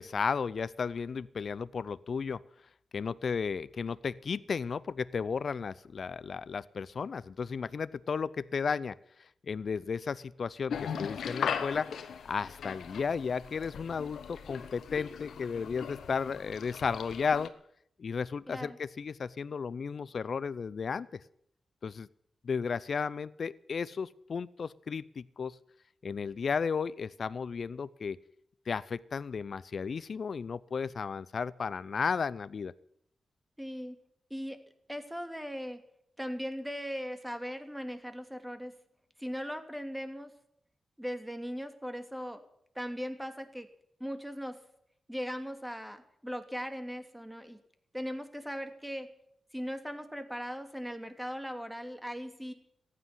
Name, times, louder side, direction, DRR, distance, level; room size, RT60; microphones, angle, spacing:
voice 1, 0.0-2.4 2.9-11.9 12.2-17.5 18.0-21.2 21.8-22.1 22.4-25.6 26.0-28.2 28.7-32.7, left 5 dB, 65° left, 18 dB, 0.5 m, -34 dB
sound 1, 10.7-17.5, left 7 dB, 80° left, 1.2 m, -39 dB
voice 2, 18.5-18.8 33.6-34.0 34.3-34.6 34.9-35.8 36.2-38.7 39.2-40.3 41.0-42.4 42.7-43.7 44.0-44.6 45.1-47.6 47.9-49.1 49.5-52.5, equal, 5° right, 7 dB, 2.7 m, -38 dB
14.5 x 9.9 x 9.7 m, 0.70 s
supercardioid pair, 45°, 0 cm